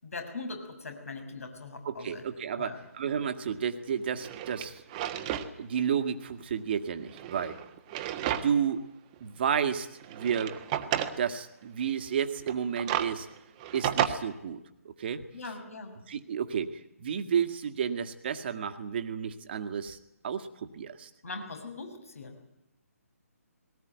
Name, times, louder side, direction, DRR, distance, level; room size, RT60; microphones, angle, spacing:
voice 1, 0.0-2.2 2.6-2.8 15.3-15.9 21.2-22.4, left 3 dB, 65° left, 5 dB, 6.5 m, -40 dB
voice 2, 1.8-4.8 5.6-7.6 8.4-8.8 9.2-10.6 10.9-13.3 13.7-15.2 16.1-20.0 20.2-21.1, right 7 dB, 40° right, 9 dB, 1.8 m, -31 dB
Drawer open or close, 3.5-3.6 4.1-5.5 5.9-6.0 7.0-8.7 9.1-9.2 10.0-11.2 12.4-14.1, right 11 dB, 25° right, 1.4 m, -32 dB
20.0 x 18.5 x 9.3 m, 0.88 s
figure-of-eight pair, 145°, 8 cm